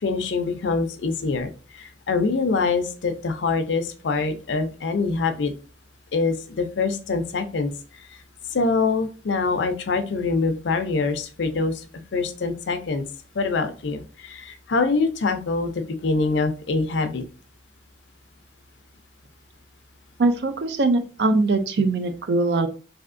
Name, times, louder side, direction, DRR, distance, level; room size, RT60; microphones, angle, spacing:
voice 1, 0.0-5.5 6.1-7.7 8.5-11.9 12.1-13.0 13.3-17.2, left 4 dB, 80° left, 8 dB, 0.5 m, -24 dB
voice 2, 20.2-22.7, right 3 dB, 65° right, 8 dB, 0.5 m, -21 dB
3.4 x 2.7 x 2.5 m, 0.36 s
head